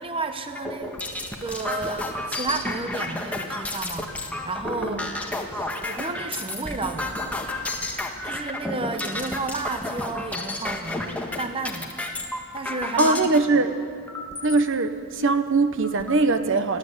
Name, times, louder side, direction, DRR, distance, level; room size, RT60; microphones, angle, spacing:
voice 1, 0.0-5.1 5.5-7.1 8.3-11.9 12.5-13.2, right 3 dB, 25° right, 8 dB, 0.8 m, -32 dB
sound 1, 0.6-13.4 14.1-14.6 15.2-15.3 15.6-16.2, left 1 dB, 5° left, 1.5 m, -31 dB
voice 2, 4.8-5.1 13.0-13.7 14.4-16.8, right 3 dB, 60° right, 10 dB, 1.0 m, -21 dB
21.5 x 15.0 x 8.1 m, 2.3 s
head